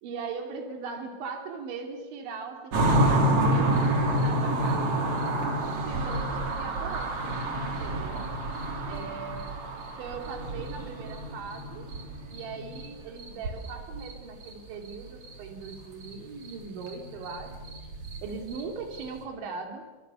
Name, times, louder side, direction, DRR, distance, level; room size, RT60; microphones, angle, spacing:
voice 1, 0.0-4.9 5.9-7.1 7.6-8.3 8.9-9.5 10.0-11.9 12.3-17.5 18.2-19.9, right 5 dB, 65° right, 4 dB, 5.1 m, -39 dB
sound 1, 2.7-12.9 13.2-14.1 14.4-14.5 14.9-15.8 16.0-16.1 16.4-19.2, right 1 dB, 40° right, 4.0 m, -28 dB
27.5 x 25.0 x 7.0 m, 1.3 s
omnidirectional pair, 5.7 m